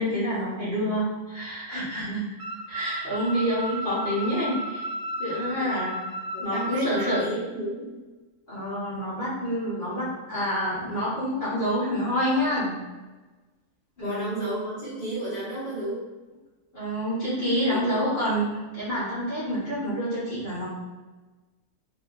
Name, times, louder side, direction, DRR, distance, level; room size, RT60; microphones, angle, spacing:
voice 1, 0.0-2.2 2.7-4.8 5.2-6.0 6.4-7.2 8.5-12.7 14.0-14.4 16.7-20.7, equal, 40° left, -10 dB, 1.3 m, -27 dB
sound 1, 2.4-7.2, right 1 dB, 75° right, 1.2 m, -33 dB
voice 2, 5.5-5.8 6.3-8.0 14.0-16.0 17.7-18.0, right 1 dB, 30° right, -11 dB, 0.9 m, -33 dB
3.5 x 2.7 x 2.5 m, 1.2 s
omnidirectional pair, 1.7 m